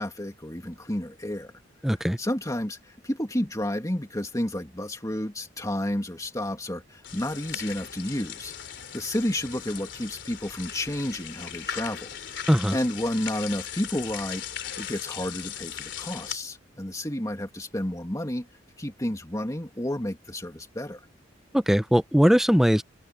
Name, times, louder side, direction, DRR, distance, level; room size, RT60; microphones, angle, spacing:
voice 1, 0.0-1.5 2.2-8.5 8.9-12.1 12.4-18.5 18.8-21.1, left 1 dB, 20° left, 2.6 m, -31 dB
voice 2, 1.8-2.2 12.5-12.8 21.5-22.8, equal, ahead, 0.8 m, -20 dB
sound 1, 7.0-16.4, left 9 dB, 70° left, 3.5 m, -38 dB
open air
head